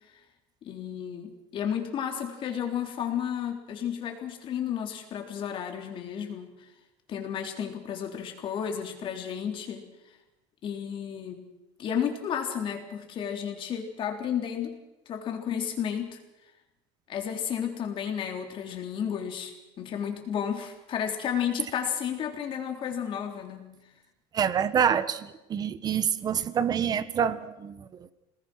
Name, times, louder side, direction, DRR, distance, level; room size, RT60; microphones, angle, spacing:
voice 1, 0.6-6.5 7.1-9.9 10.6-11.5 11.8-14.8 15.1-16.2 17.1-23.8, left 8 dB, 35° left, 3 dB, 3.8 m, -32 dB
voice 2, 24.3-28.1, right 8 dB, 30° right, 14 dB, 1.2 m, -27 dB
27.0 x 20.0 x 6.3 m, 0.97 s
cardioid pair, 155°, 14 cm